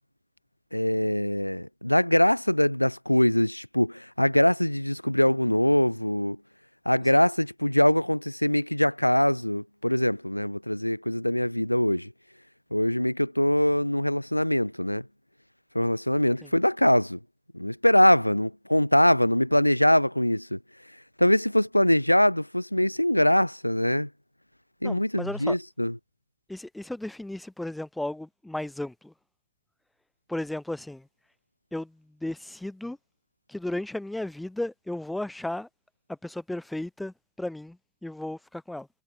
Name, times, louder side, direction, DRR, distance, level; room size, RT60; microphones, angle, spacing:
voice 1, 0.7-6.4 6.9-12.1 12.7-15.0 15.7-17.2 17.5-20.6 21.2-24.1 24.8-26.0, left 1 dB, 90° left, 0.5 m, -23 dB
voice 2, 24.8-25.6 26.5-29.1 30.3-31.1 31.7-33.0 33.5-35.7 36.2-38.9, left 1 dB, 5° left, 0.4 m, -34 dB
figure-of-eight pair, 90°, 0 cm